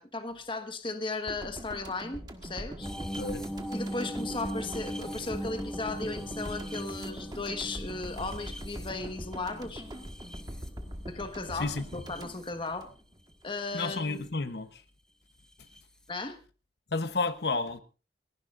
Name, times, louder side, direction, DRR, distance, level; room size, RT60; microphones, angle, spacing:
voice 1, 0.0-2.9 3.7-9.9 11.1-12.9 13.4-14.2 16.1-16.4, left 3 dB, 30° left, 1.4 m, -36 dB
sound 1, 1.3-13.5 13.7-13.9, equal, 25° right, 1.6 m, -42 dB
sound 2, 2.8-11.1 11.7-12.5 13.7-14.0 15.8-15.9, equal, 5° left, 0.9 m, -40 dB
voice 2, 3.1-3.4 11.5-11.9 13.7-14.8 16.9-17.8, left 3 dB, 65° left, 1.0 m, -31 dB
28.5 x 11.0 x 2.6 m
head